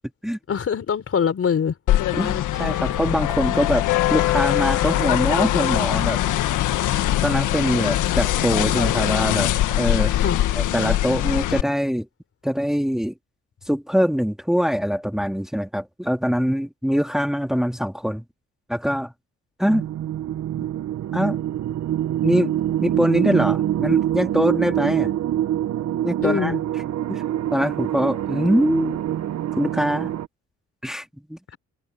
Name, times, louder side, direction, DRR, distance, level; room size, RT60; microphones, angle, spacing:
voice 1, 0.5-1.7 10.1-10.4 26.2-26.6, left 7 dB, 50° left, 4.3 m, -23 dB
sound 1, 1.9-11.6, left 13 dB, 85° left, 1.7 m, -22 dB
voice 2, 2.1-6.2 7.2-10.1 10.6-12.1 12.4-13.1 13.7-18.2 18.7-19.1 19.6-19.9 21.1-21.4 22.2-22.6 22.8-25.1 26.0-26.5 27.1-27.2 27.5-29.0 29.5-30.1 30.8-31.4, equal, ahead, 2.6 m, -23 dB
sound 2, 19.6-30.3, right 12 dB, 65° right, 1.0 m, -25 dB
cardioid pair, 90°, 30 cm